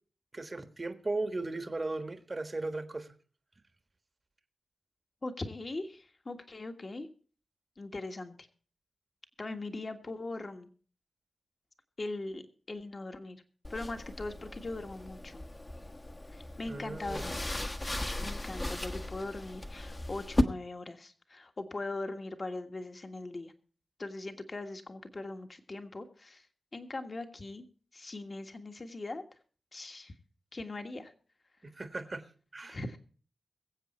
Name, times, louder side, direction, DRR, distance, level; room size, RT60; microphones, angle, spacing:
voice 1, 0.3-3.1 16.7-17.3 31.6-32.3 32.5-32.8, right 2 dB, 35° right, 9 dB, 1.4 m, -37 dB
voice 2, 5.2-7.1 7.8-8.4 9.4-10.7 12.0-13.4 13.7-15.4 16.3-17.5 18.2-23.5 24.0-26.4 26.7-27.7 27.9-29.2 29.7-30.1 30.5-31.1 32.7-33.0, left 2 dB, 40° left, 7 dB, 1.6 m, -40 dB
sound 1, 13.6-20.4, left 1 dB, 25° left, 1.2 m, -36 dB
22.5 x 7.6 x 4.3 m, 0.40 s
cardioid pair, 65°, 0 cm